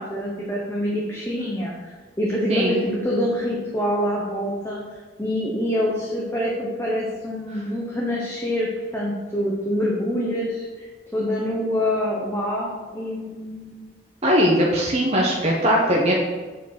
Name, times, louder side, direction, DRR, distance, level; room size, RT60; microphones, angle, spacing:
voice 1, 0.0-1.9 2.2-4.8 5.2-13.8, equal, 15° left, -4 dB, 1.1 m, -26 dB
voice 2, 2.5-2.8 14.2-16.1, equal, 40° right, -3 dB, 1.1 m, -20 dB
7.5 x 4.9 x 6.0 m, 1.4 s
head